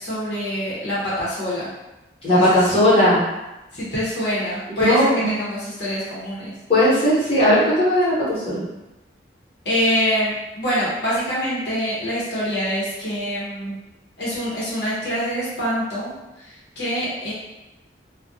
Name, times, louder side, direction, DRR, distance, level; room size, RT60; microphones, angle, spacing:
voice 1, 0.0-1.7 2.3-2.9 3.7-6.5 9.6-13.8 14.2-16.1 16.4-17.3, equal, 75° left, -8 dB, 0.8 m, -25 dB
voice 2, 2.2-3.2 4.8-5.3 6.7-8.6, left 1 dB, 30° left, -11 dB, 1.0 m, -17 dB
2.3 x 2.1 x 2.6 m, 1.0 s
head